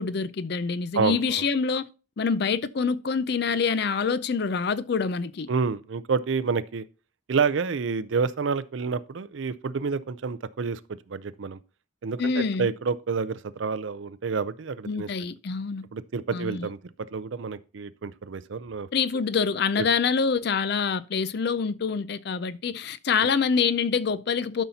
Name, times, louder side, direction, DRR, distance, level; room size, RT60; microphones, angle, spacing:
voice 1, 0.0-1.9 2.2-5.5 12.2-12.7 14.8-15.8 16.3-16.7 18.9-24.6, left 5 dB, 55° left, 0.4 m, -26 dB
voice 2, 5.5-6.8 7.3-10.8 11.1-11.6 12.0-15.1 15.9-16.8 17.1-18.9 19.8-19.9, right 5 dB, 70° right, 0.5 m, -28 dB
12.5 x 5.6 x 2.8 m
head